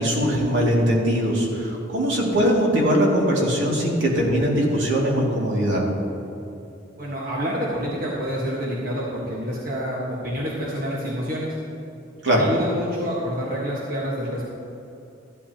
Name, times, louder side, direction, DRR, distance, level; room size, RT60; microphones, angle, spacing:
voice 1, 0.0-5.8 12.2-12.4, equal, 70° right, -3 dB, 2.3 m, -21 dB
voice 2, 7.0-11.6 12.3-14.5, equal, 45° right, -5 dB, 1.4 m, -28 dB
14.5 x 11.5 x 2.9 m, 2.8 s
head